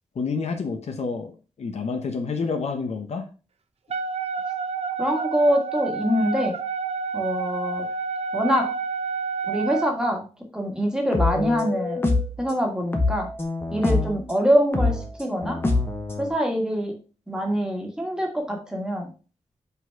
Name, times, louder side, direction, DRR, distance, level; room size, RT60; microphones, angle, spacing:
voice 1, 0.1-1.3 1.6-3.3, left 4 dB, 65° left, 5 dB, 0.9 m, -28 dB
Wind instrument woodwind instrument, 3.9-10.0, right 5 dB, 60° right, 0.7 m, -29 dB
voice 2, 5.0-6.5 7.1-7.8 8.3-8.7 9.5-10.3 10.5-12.1 12.4-13.3 13.7-15.6 16.2-16.9 17.3-19.1, equal, 5° right, 1 dB, 1.6 m, -24 dB
sound 1, 11.1-12.4 12.9-14.2 14.7-16.3, left 2 dB, 20° left, 1.0 m, -25 dB
5.6 x 4.1 x 4.5 m, 0.35 s
wide cardioid pair, 155°, 12 cm